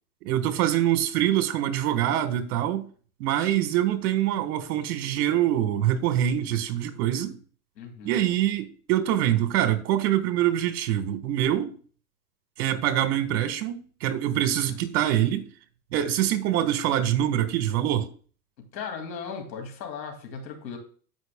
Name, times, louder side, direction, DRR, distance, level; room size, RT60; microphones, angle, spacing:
voice 1, 0.2-2.9 3.2-7.4 8.0-11.7 12.6-15.5 15.9-18.1, right 11 dB, 60° right, 1.4 m, -24 dB
voice 2, 7.8-8.2 14.5-14.9 18.7-20.8, left 6 dB, 85° left, 2.5 m, -37 dB
14.5 x 5.3 x 2.2 m
hypercardioid pair, 125°, 50 cm